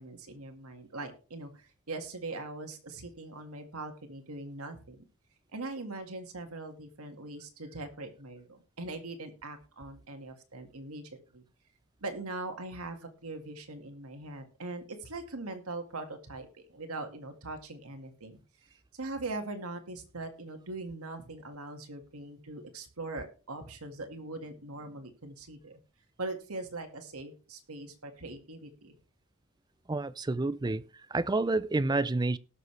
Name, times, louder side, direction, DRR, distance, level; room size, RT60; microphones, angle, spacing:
voice 1, 0.0-5.1 5.5-11.4 12.0-18.4 18.9-25.8 26.2-29.0, right 2 dB, 85° right, 1.9 m, -41 dB
voice 2, 29.9-30.8 31.1-32.4, right 2 dB, 20° right, 0.4 m, -29 dB
19.0 x 6.5 x 3.3 m
head